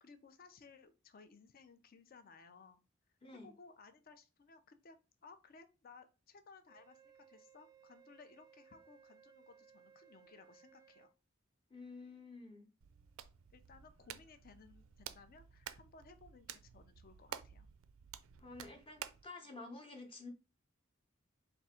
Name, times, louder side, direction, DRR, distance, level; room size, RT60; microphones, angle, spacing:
voice 1, 0.0-2.8 3.4-11.1 13.5-17.7, left 4 dB, 45° left, 0.5 m, -60 dB
Wind instrument woodwind instrument, 6.7-11.1, right 8 dB, 15° right, 0.4 m, -64 dB
voice 2, 11.7-12.7 18.4-20.3, left 3 dB, 25° left, 0.8 m, -50 dB
Hands, 12.8-19.3, right 9 dB, 85° right, 0.4 m, -52 dB
3.5 x 2.5 x 4.2 m
head